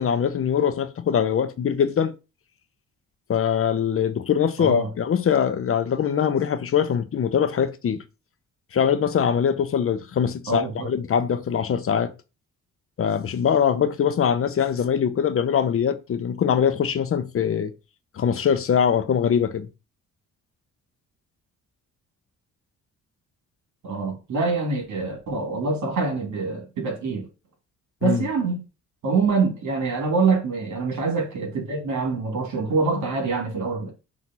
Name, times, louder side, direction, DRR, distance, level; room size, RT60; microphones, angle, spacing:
voice 1, 0.0-2.1 3.3-8.0 8.7-12.1 13.0-17.7 18.1-19.7 28.0-28.2, left 8 dB, 45° left, 0.9 m, -22 dB
voice 2, 4.6-4.9 10.5-10.9 23.8-27.3 28.0-28.6 29.0-33.9, right 4 dB, 70° right, 3.2 m, -25 dB
6.2 x 3.6 x 5.5 m
cardioid pair, 90°, 30 cm